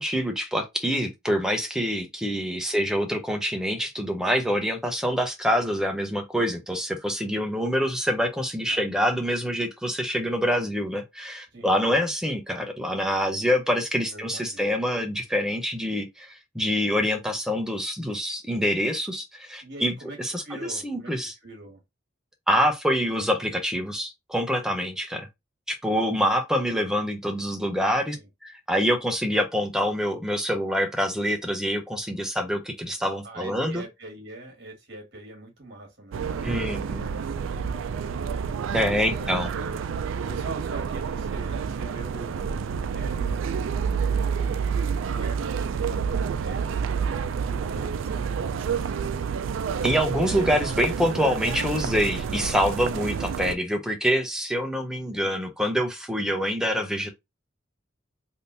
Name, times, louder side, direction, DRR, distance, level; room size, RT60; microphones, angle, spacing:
voice 1, 0.0-21.3 22.5-25.3 25.7-28.2 28.4-33.8 36.4-37.1 38.7-39.5 49.8-57.1, equal, 5° right, 0.6 m, -26 dB
voice 2, 11.5-12.1 14.1-14.7 19.6-21.8 28.1-28.3 33.2-38.0 38.8-39.8 40.2-43.4 45.1-49.1 55.1-55.4, right 1 dB, 55° right, 1.7 m, -44 dB
sound 1, 36.1-53.6, right 6 dB, 80° right, 0.3 m, -29 dB
3.6 x 2.7 x 2.5 m
head